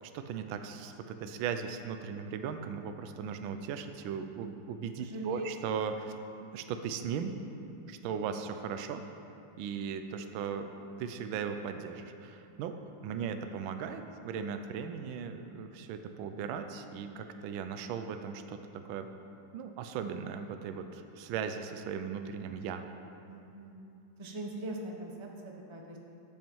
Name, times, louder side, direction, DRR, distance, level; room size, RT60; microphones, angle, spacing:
voice 1, 0.0-6.2 6.5-7.3 7.9-9.0 9.6-10.7 11.0-12.8 13.0-18.6 18.9-19.1 19.5-22.8, right 7 dB, 75° right, 7 dB, 1.4 m, -37 dB
voice 2, 5.0-5.5 23.3-23.8 24.2-26.0, right 1 dB, 50° right, 1 dB, 0.3 m, -41 dB
12.5 x 7.4 x 4.6 m, 2.7 s
omnidirectional pair, 2.3 m